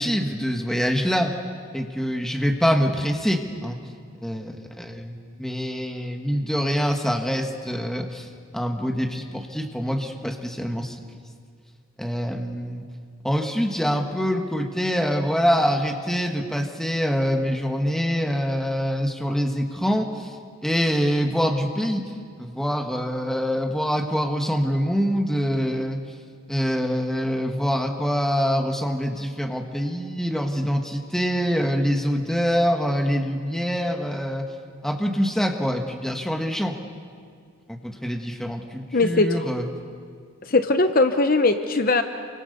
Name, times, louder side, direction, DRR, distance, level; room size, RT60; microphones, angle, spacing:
voice 1, 0.0-1.4 1.7-3.8 4.2-11.0 12.0-12.8 13.2-20.4 20.6-22.0 22.4-26.0 26.5-34.5 34.8-36.8 37.8-39.6, equal, ahead, 3 dB, 1.6 m, -25 dB
voice 2, 38.9-39.3 40.5-42.0, left 3 dB, 40° left, 8 dB, 0.9 m, -19 dB
28.5 x 24.5 x 6.8 m, 2.1 s
head